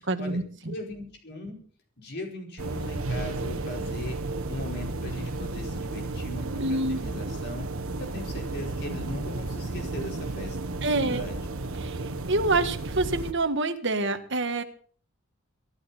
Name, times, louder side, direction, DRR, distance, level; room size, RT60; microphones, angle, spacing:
voice 1, 0.1-0.7 6.4-7.0 10.8-11.2 11.8-14.6, right 2 dB, 60° right, 7 dB, 1.8 m, -27 dB
voice 2, 0.7-1.6 2.0-4.2 4.5-7.7 8.0-11.4, left 1 dB, 50° left, 2 dB, 4.9 m, -39 dB
sound 1, 2.6-13.3, right 2 dB, 80° right, 1.4 m, -33 dB
24.5 x 11.0 x 4.4 m, 0.44 s
head